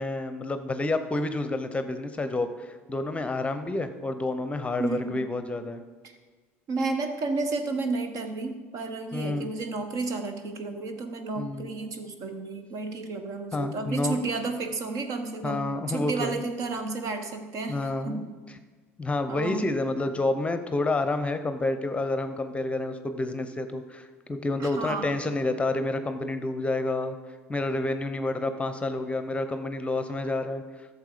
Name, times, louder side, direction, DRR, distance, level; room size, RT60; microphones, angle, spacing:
voice 1, 0.0-5.8 9.1-9.5 11.4-11.7 13.5-14.1 15.4-16.3 17.7-18.2 19.0-27.2 27.5-30.6, left 2 dB, 15° left, 10 dB, 0.8 m, -29 dB
voice 2, 4.8-5.2 6.0-6.1 6.7-18.3 19.3-19.7 24.6-25.1, right 3 dB, 50° right, 7 dB, 1.3 m, -32 dB
13.0 x 7.1 x 5.1 m, 1.4 s
hypercardioid pair, 75°, 7 cm